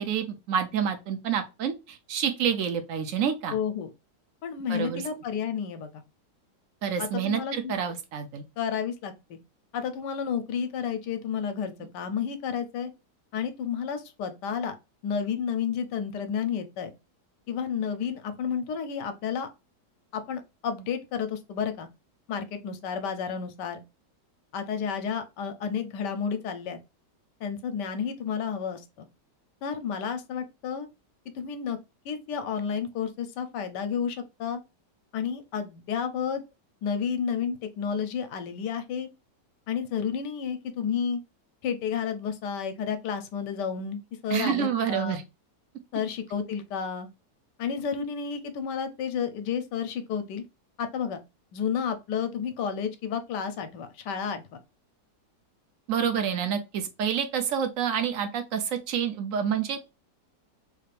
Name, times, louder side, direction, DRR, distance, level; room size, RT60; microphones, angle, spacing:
voice 1, 0.0-3.6 4.7-5.0 6.8-8.4 44.3-45.2 55.9-59.8, right 8 dB, 70° right, 0.8 m, -28 dB
voice 2, 3.5-3.9 4.4-6.0 7.0-7.7 8.6-9.4 9.7-12.9 13.3-14.7 15.0-16.9 17.5-19.5 20.1-21.9 22.3-23.8 24.5-26.8 27.4-29.1 29.6-30.9 31.3-31.8 32.0-34.6 35.1-36.4 36.8-39.1 39.7-41.2 41.6-45.2 45.9-47.1 47.6-50.4 50.8-51.2 51.5-54.6, left 7 dB, 85° left, 1.2 m, -31 dB
3.3 x 2.4 x 3.2 m
omnidirectional pair, 1.8 m